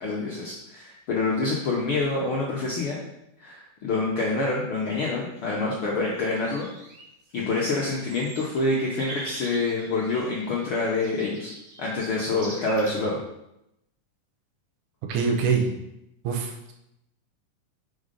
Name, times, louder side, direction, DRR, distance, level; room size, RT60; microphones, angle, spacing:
voice 1, 0.0-3.0 3.4-6.7 7.3-11.5 11.8-13.2, left 3 dB, 70° left, -4 dB, 1.3 m, -26 dB
sound 1, 5.4-5.6 6.2-12.9, right 2 dB, 55° right, 2.6 m, -43 dB
voice 2, 15.0-15.7 16.2-16.7, right 5 dB, 75° right, 3 dB, 2.3 m, -25 dB
6.3 x 4.5 x 5.3 m, 0.83 s
omnidirectional pair, 3.7 m